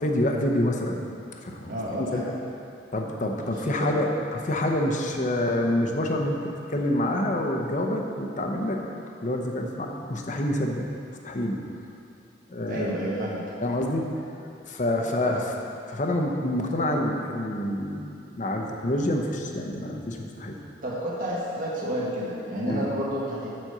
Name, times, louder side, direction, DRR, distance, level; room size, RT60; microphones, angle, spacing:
voice 1, 0.0-1.0 1.3-2.2 2.9-8.8 9.2-10.9 11.2-11.6 12.5-12.9 13.6-14.3 14.7-15.4 15.9-18.0 18.3-20.6 22.6-22.8, left 1 dB, 40° left, 2 dB, 0.8 m, -27 dB
voice 2, 1.6-2.3 3.4-4.0 12.7-13.4 15.2-15.3 20.8-23.5, equal, 45° right, -6 dB, 1.5 m, -30 dB
7.5 x 5.2 x 6.7 m, 2.5 s
head